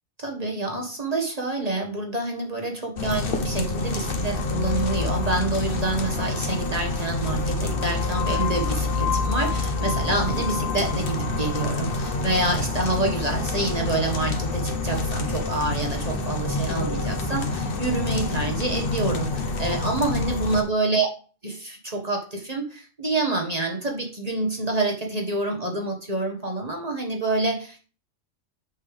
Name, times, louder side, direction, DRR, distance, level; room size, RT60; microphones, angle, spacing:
voice 1, 0.2-21.1 21.4-27.9, right 2 dB, 30° right, 1 dB, 1.3 m, -27 dB
sound 1, 3.0-20.6, left 3 dB, 45° left, 1.1 m, -27 dB
7.8 x 5.5 x 3.4 m, 0.38 s
omnidirectional pair, 1.4 m